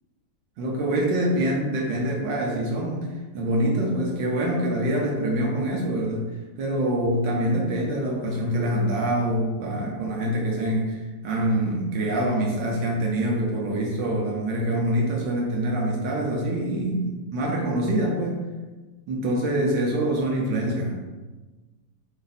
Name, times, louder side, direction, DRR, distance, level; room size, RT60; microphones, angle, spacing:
voice 1, 0.6-3.1 3.3-18.4 19.1-21.0, right 1 dB, 75° right, -2 dB, 1.4 m, -25 dB
4.8 x 2.7 x 4.0 m, 1.2 s
omnidirectional pair, 2.0 m